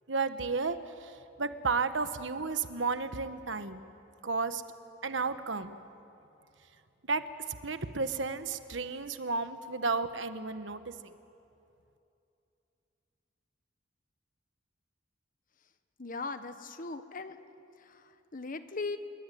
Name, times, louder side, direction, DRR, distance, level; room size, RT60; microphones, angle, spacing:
voice 1, 0.1-0.8 1.4-3.9 4.2-4.6 5.0-5.8 7.1-7.2 7.6-10.8, right 4 dB, 75° right, 10 dB, 1.3 m, -32 dB
voice 2, 16.0-17.4 17.8-19.0, left 3 dB, 45° left, 10 dB, 1.3 m, -39 dB
27.0 x 22.5 x 9.4 m, 2.7 s
head